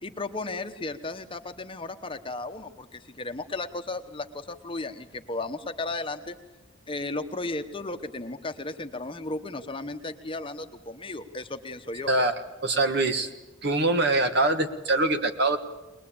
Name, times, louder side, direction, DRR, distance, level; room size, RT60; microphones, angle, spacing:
voice 1, 0.0-6.4 6.9-12.1, left 2 dB, 25° left, 7 dB, 1.0 m, -35 dB
voice 2, 12.6-13.3 13.6-15.6, right 2 dB, 55° right, 7 dB, 1.7 m, -23 dB
21.0 x 21.0 x 8.7 m, 1.1 s
head